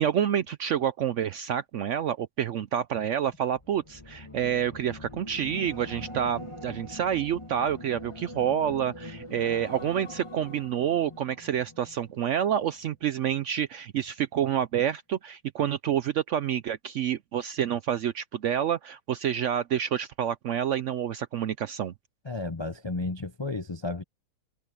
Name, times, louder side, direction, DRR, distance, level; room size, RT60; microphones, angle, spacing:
voice 1, 0.0-21.9, right 9 dB, 65° right, 0.7 m, -28 dB
sound 1, 3.5-12.9 13.2-13.5, left 1 dB, 20° left, 1.4 m, -43 dB
voice 2, 22.2-24.0, left 3 dB, 40° left, 0.4 m, -33 dB
omnidirectional pair, 1.7 m